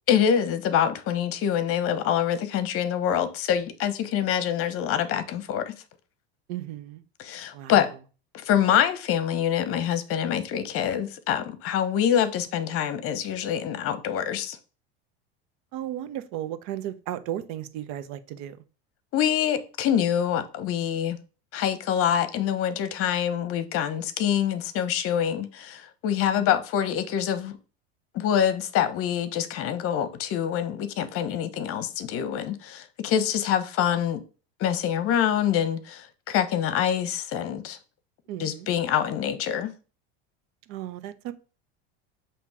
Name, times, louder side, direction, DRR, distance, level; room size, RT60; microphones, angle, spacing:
voice 1, 0.1-5.7 7.2-7.9 8.4-14.6 19.1-21.2 21.5-27.6 28.1-34.2 34.6-37.8 38.4-39.7, left 9 dB, 45° left, 0.9 m, -25 dB
voice 2, 6.5-7.0 7.5-7.8 15.7-18.6 26.4-26.5 38.3-38.7 40.7-41.3, right 12 dB, 60° right, 0.8 m, -35 dB
7.1 x 3.0 x 4.8 m
supercardioid pair, 110°, 31 cm